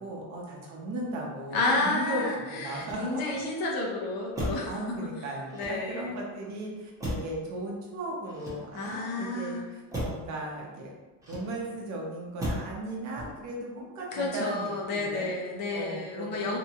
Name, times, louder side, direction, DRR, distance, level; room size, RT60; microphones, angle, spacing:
voice 1, 0.0-3.3 4.7-10.9 11.3-15.3 15.7-16.6, right 1 dB, 45° right, -2 dB, 0.7 m, -36 dB
voice 2, 1.5-5.0 5.5-6.1 8.7-9.6 14.1-16.6, left 2 dB, 60° left, -1 dB, 0.8 m, -31 dB
Motor vehicle (road), 2.7-3.5 4.3-4.8 5.5-6.1 7.0-7.5 8.2-9.0 9.9-10.3 11.2-11.8 12.4-12.8 13.1-13.6, equal, 10° right, 0.7 m, -36 dB
2.8 x 2.2 x 2.8 m, 1.2 s
cardioid pair, 135°, 40 cm